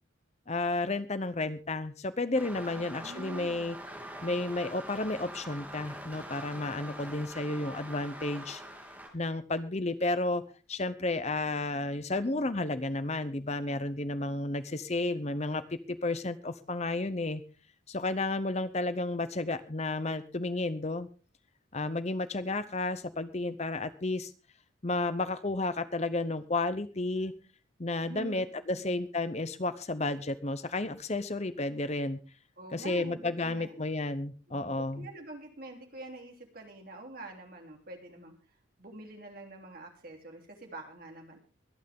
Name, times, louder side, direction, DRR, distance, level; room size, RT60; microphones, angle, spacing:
voice 1, 0.5-3.8 4.2-8.6 9.1-10.4 10.7-17.4 17.9-21.1 21.7-24.3 24.8-27.3 27.8-32.2 32.7-35.1, left 2 dB, 35° left, 13 dB, 0.8 m, -32 dB
sound 1, 2.3-9.1, right 1 dB, 10° right, 3.0 m, -44 dB
voice 2, 2.7-3.6 28.0-28.4 28.7-29.0 32.6-33.7 34.5-38.3 38.8-41.4, right 1 dB, 45° right, 2 dB, 3.4 m, -46 dB
23.5 x 9.2 x 3.7 m, 0.35 s
head